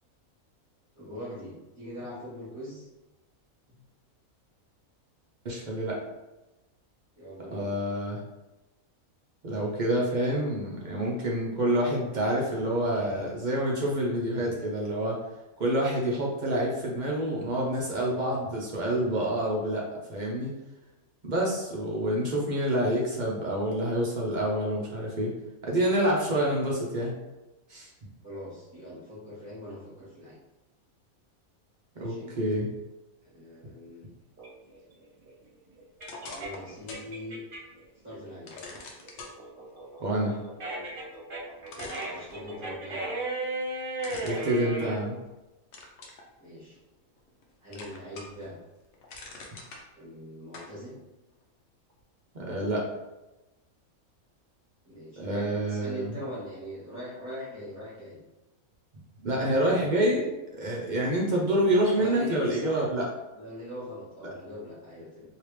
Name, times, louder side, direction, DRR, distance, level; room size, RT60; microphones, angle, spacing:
voice 1, 0.9-2.8 7.2-7.7 28.2-30.4 31.9-32.4 33.2-34.0 36.2-37.4 38.0-38.5 41.8-43.1 46.4-46.8 47.6-48.5 50.0-50.9 54.8-58.2 59.4-59.5 61.9-62.9 63.3-65.3, equal, 10° right, -12 dB, 1.1 m, -41 dB
voice 2, 5.4-6.0 7.5-8.2 9.4-15.2 15.6-20.5 21.2-25.3 25.6-27.1 27.7-27.9 32.0-32.7 40.0-40.4 44.2-45.1 52.3-52.9 55.2-56.1 59.2-63.1, right 1 dB, 55° right, -3 dB, 0.5 m, -27 dB
sound 1, 34.4-37.8 38.2-45.0, right 2 dB, 40° right, 1.2 m, -35 dB
sound 2, 36.0-37.1 37.5-37.6 38.5-39.3 41.1-41.2 41.7-42.8 44.0-45.3 45.7-46.2 46.8-47.4 47.7-48.5 48.8-49.8 50.5-50.7, left 3 dB, 60° left, 0.9 m, -44 dB
3.2 x 2.8 x 3.1 m, 1.0 s
omnidirectional pair, 1.5 m